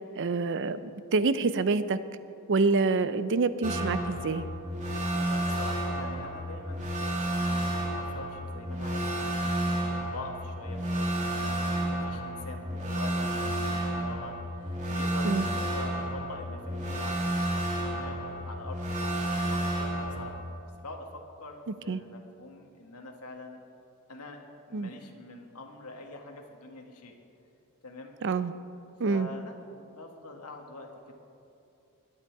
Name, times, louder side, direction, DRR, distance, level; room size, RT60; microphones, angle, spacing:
voice 1, 0.2-2.0 2.5-4.4 15.2-15.5 21.9-22.0 24.7-24.9 28.2-28.5 29.0-29.3, right 4 dB, 55° right, 13 dB, 0.5 m, -27 dB
sound 1, 3.6-20.3, right 1 dB, 35° right, 2.4 m, -31 dB
voice 2, 5.1-17.3 17.9-23.6 24.1-24.4 24.7-27.1 27.8-28.1 29.0-31.1, left 2 dB, 80° left, 2 dB, 1.7 m, -44 dB
21.0 x 8.7 x 4.7 m, 2.7 s
head